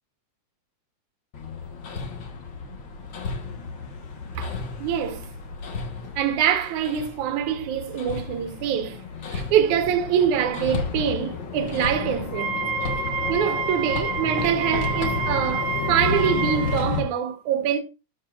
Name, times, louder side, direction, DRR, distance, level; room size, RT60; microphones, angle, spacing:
Hammer, 1.3-17.0, left 4 dB, 50° left, 1.5 m, -32 dB
voice 1, 4.3-5.3 6.2-12.6 13.3-17.8, right 9 dB, 75° right, 2.5 m, -25 dB
Wind instrument woodwind instrument, 12.3-16.8, right 4 dB, 60° right, 1.9 m, -28 dB
13.5 x 5.4 x 2.4 m
omnidirectional pair, 3.5 m